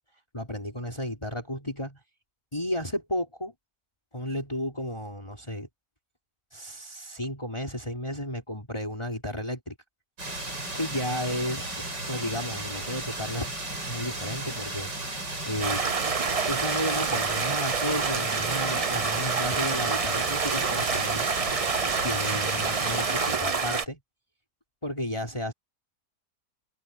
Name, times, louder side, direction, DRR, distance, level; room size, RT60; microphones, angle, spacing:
voice 1, 0.3-2.0 2.5-3.5 4.1-5.7 6.5-9.7 10.7-13.6 13.9-15.8 16.5-21.3 22.0-24.0 24.8-25.5, left 1 dB, 15° left, 4.8 m, -33 dB
sound 1, 10.2-23.4, right 2 dB, 90° right, 8.7 m, -35 dB
Stream, 15.6-23.9, right 5 dB, 40° right, 0.5 m, -27 dB
open air
omnidirectional pair, 1.8 m